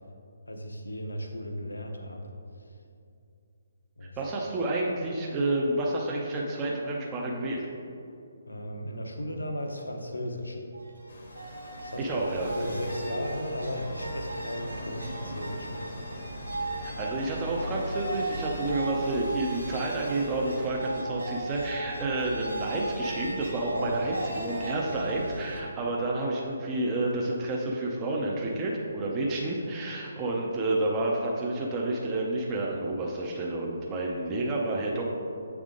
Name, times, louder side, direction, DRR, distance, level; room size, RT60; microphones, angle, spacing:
voice 1, 0.5-2.3 4.0-4.2 8.5-10.6 11.8-15.9 23.7-23.9, equal, 85° left, 3 dB, 0.8 m, -35 dB
voice 2, 4.2-7.6 12.0-12.5 16.7-35.1, right 2 dB, 20° right, -3 dB, 0.6 m, -30 dB
sound 1, 10.7-25.6, right 2 dB, 90° right, 1.0 m, -37 dB
sound 2, 11.1-20.7, left 1 dB, 50° left, 0.8 m, -45 dB
7.9 x 3.5 x 3.7 m, 2.5 s
figure-of-eight pair, 140°, 0 cm